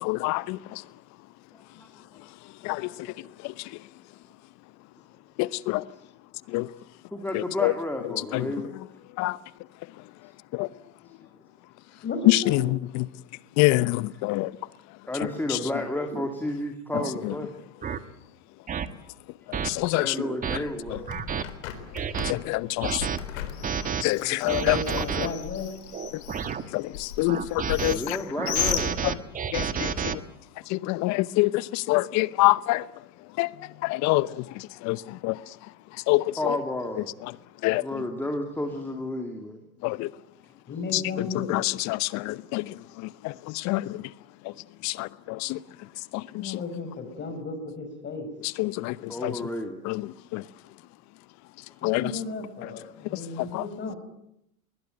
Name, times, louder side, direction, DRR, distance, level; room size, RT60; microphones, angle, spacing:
voice 1, 0.0-0.6 2.6-2.9 5.4-5.8 6.5-6.7 7.3-7.7 8.3-8.4 9.2-9.4 10.5-10.7 12.3-12.6 12.9-13.0 13.6-14.5 19.6-20.1 22.2-23.0 24.0-24.8 26.7-28.2 29.5-29.9 30.7-32.8 33.4-33.5 33.8-34.3 34.8-35.0 35.2-35.4 36.1-36.6 37.6-37.8 39.8-40.1 41.5-42.6 43.2-44.0 44.8-45.6 46.1-46.2 48.6-49.0 49.2-49.3 49.9-50.0 50.3-50.4 51.8-52.0, left 21 dB, 40° left, 0.9 m, -25 dB
voice 2, 1.5-2.1 2.7-3.1 5.8-5.9 7.1-8.7 15.1-17.5 19.9-21.1 27.8-28.9 36.4-37.1 37.8-39.6 49.1-49.8 53.9-54.0, left 1 dB, 5° left, 2.4 m, -32 dB
voice 3, 12.0-12.7 13.4-13.5 24.2-25.7 40.7-41.5 46.4-48.3 50.2-50.3 51.8-54.0, left 4 dB, 25° left, 6.1 m, -34 dB
sound 1, 16.1-16.3 16.9-17.1 17.8-18.0 18.7-18.9 19.5-19.7 20.2-20.6 21.1-21.4 21.9-22.3 22.8-23.2 23.6-24.0 24.5-25.3 25.9-26.6 27.3-28.0 28.4-30.2, right 7 dB, 20° right, 1.3 m, -30 dB
Bird, 20.6-29.5, left 10 dB, 65° left, 4.2 m, -36 dB
21.5 x 20.0 x 9.2 m
hypercardioid pair, 110°, 42 cm